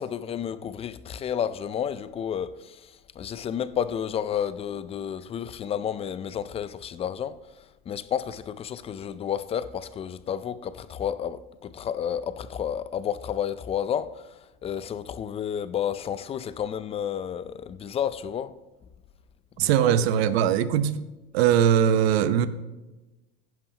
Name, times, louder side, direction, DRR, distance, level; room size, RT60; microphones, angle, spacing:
voice 1, 0.0-18.5 19.6-20.1, left 9 dB, 20° left, 0.4 m, -31 dB
voice 2, 19.6-21.0 21.3-22.5, right 9 dB, 75° right, 0.9 m, -21 dB
15.5 x 11.0 x 2.9 m
supercardioid pair, 125°, 32 cm